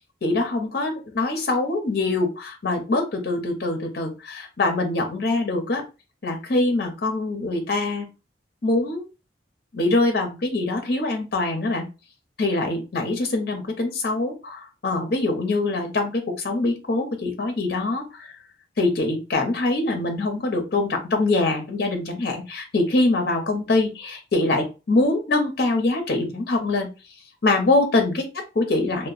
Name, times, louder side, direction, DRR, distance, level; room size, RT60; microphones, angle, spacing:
voice 1, 0.2-5.8 6.2-8.1 8.6-9.0 9.7-11.9 12.4-18.3 18.8-26.9 27.4-29.1, left 2 dB, 55° left, 3 dB, 0.6 m, -24 dB
2.8 x 2.1 x 2.4 m, 0.30 s
head